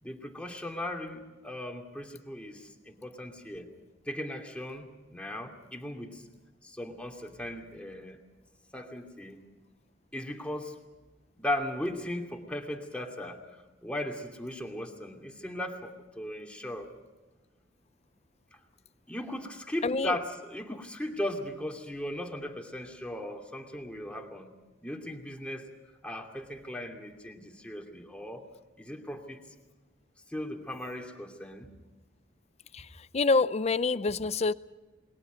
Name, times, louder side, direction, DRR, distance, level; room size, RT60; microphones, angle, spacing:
voice 1, 0.0-3.7 4.1-6.2 6.6-8.2 8.7-9.4 10.1-10.8 11.4-16.9 18.5-18.6 19.1-24.5 24.8-25.7 26.0-28.4 28.8-29.4 30.3-31.7, left 1 dB, 5° left, 2.7 m, -37 dB
voice 2, 19.8-20.2 32.7-34.5, left 3 dB, 35° left, 0.6 m, -27 dB
28.5 x 21.5 x 5.2 m
head